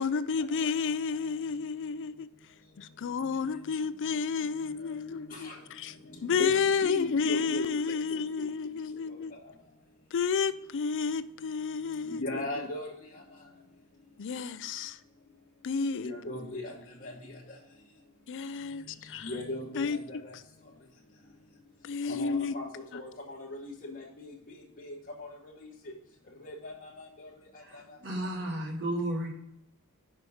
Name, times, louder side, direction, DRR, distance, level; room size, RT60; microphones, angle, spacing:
voice 1, 0.0-2.3 2.8-5.9 6.2-9.3 10.1-12.4 14.2-15.0 15.6-16.1 18.3-19.3 19.8-20.0 21.8-22.5, left 5 dB, 55° left, 0.4 m, -31 dB
voice 2, 4.7-5.6 6.0-8.5 9.1-9.4 11.7-11.8 12.1-12.9 13.1-13.2 16.0-16.7 17.0-17.1 17.5-17.6 18.8-20.3 22.1-22.7 22.9-25.3 25.6-25.9 26.4-27.3 27.5-28.0, left 2 dB, 40° left, 1.2 m, -39 dB
voice 3, 27.6-29.3, right 1 dB, 55° right, 2.0 m, -33 dB
6.0 x 4.8 x 5.5 m
head